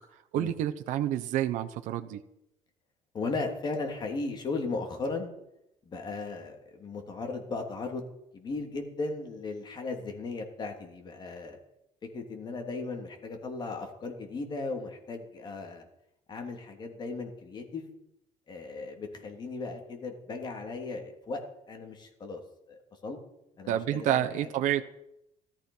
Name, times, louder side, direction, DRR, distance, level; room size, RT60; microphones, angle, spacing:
voice 1, 0.3-2.2 23.7-24.8, right 11 dB, 70° right, 7 dB, 1.0 m, -29 dB
voice 2, 3.1-5.3 5.8-8.0 8.3-11.6 12.1-15.9 16.3-17.9 18.5-21.4 21.7-22.4 22.7-23.2 23.6-24.5, left 3 dB, 35° left, 3 dB, 3.1 m, -36 dB
17.5 x 13.5 x 5.6 m, 0.82 s
cardioid pair, 150°, 13 cm